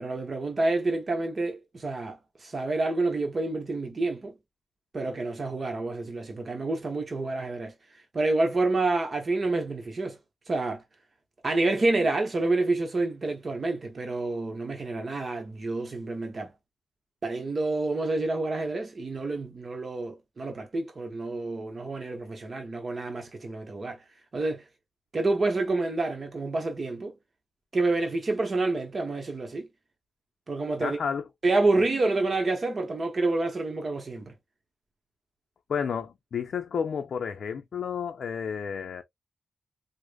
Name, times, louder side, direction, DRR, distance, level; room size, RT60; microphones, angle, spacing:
voice 1, 0.0-4.3 4.9-7.7 8.1-10.2 10.5-10.8 11.4-16.5 17.2-24.0 24.3-24.6 25.1-27.1 27.7-29.7 30.5-31.0 31.4-34.3, right 2 dB, 40° right, 0.7 m, -28 dB
voice 2, 30.8-31.2 35.7-39.0, left 7 dB, 65° left, 0.4 m, -31 dB
4.8 x 2.0 x 2.2 m
wide cardioid pair, 130°, 0 cm